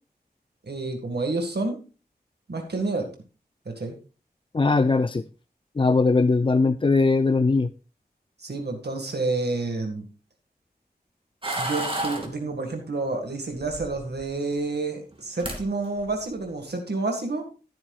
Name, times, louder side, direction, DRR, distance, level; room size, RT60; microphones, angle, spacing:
voice 1, 0.6-1.8 2.5-3.1 3.7-3.9 8.4-10.0 11.6-17.5, right 3 dB, 80° right, 3 dB, 1.9 m, -29 dB
voice 2, 4.5-5.2 5.8-7.7, left 3 dB, 30° left, 13 dB, 0.4 m, -20 dB
sound 1, 11.4-12.3 13.6-14.3 15.1-15.2 15.4-15.6 16.0-16.3, right 1 dB, 30° right, 2.7 m, -30 dB
14.5 x 8.8 x 2.4 m, 0.34 s
wide cardioid pair, 70°, 17 cm